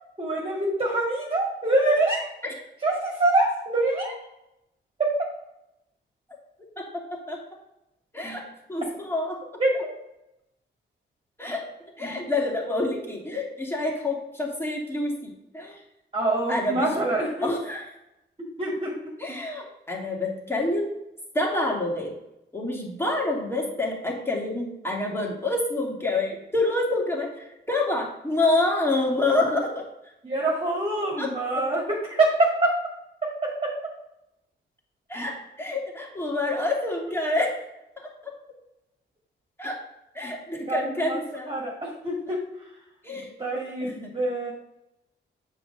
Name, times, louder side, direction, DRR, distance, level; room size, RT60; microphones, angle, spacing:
voice 1, 0.2-2.3 2.8-4.2 5.0-5.1 9.6-9.7 16.1-17.5 18.6-18.9 19.3-19.4 30.2-32.8 33.4-33.7 40.7-42.4 43.4-44.5, right 2 dB, 25° right, -4 dB, 1.9 m, -25 dB
voice 2, 8.1-8.4 8.7-9.4 11.4-11.6 12.0-15.8 16.5-16.9 17.4-17.8 19.2-20.9 21.3-22.1 22.5-29.8 31.2-31.3 35.1-37.6 38.0-38.1 39.6-39.7 40.1-41.5 43.0-43.3 43.8-44.1, left 2 dB, 10° left, -2 dB, 2.5 m, -27 dB
7.6 x 4.1 x 6.7 m, 0.88 s
cardioid pair, 100°, 21 cm